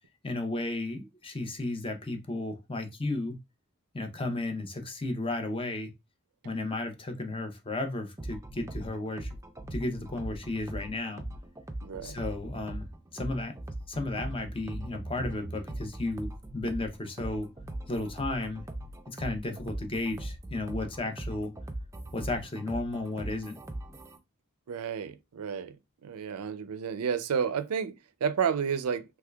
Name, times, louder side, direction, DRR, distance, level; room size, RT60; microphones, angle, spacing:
voice 1, 0.2-3.4 3.9-5.9 6.4-9.3 9.7-11.2 12.0-13.5 13.9-17.5 17.9-18.6 19.1-21.5 22.1-23.6, left 2 dB, 25° left, 0.6 m, -34 dB
sound 1, 8.2-24.2, right 1 dB, 15° right, 0.4 m, -40 dB
voice 2, 11.8-12.2 24.7-25.8 26.0-27.9 28.2-29.0, right 7 dB, 90° right, 0.4 m, -31 dB
3.5 x 3.2 x 2.3 m
head